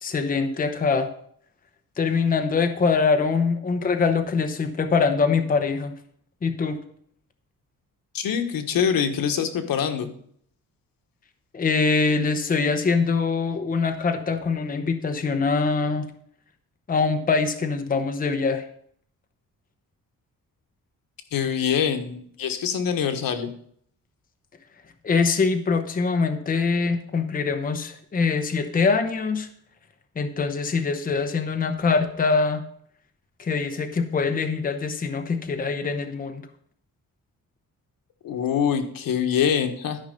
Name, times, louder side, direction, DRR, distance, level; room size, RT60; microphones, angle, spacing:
voice 1, 0.0-1.1 2.0-5.9 6.4-6.8 11.5-16.1 16.9-18.6 25.0-29.5 30.2-32.6 33.4-36.4, left 4 dB, 25° left, 7 dB, 0.8 m, -23 dB
voice 2, 8.1-10.1 21.3-23.5 38.2-40.0, left 8 dB, 85° left, 7 dB, 1.3 m, -24 dB
12.5 x 5.4 x 5.2 m, 0.63 s
wide cardioid pair, 155°, 33 cm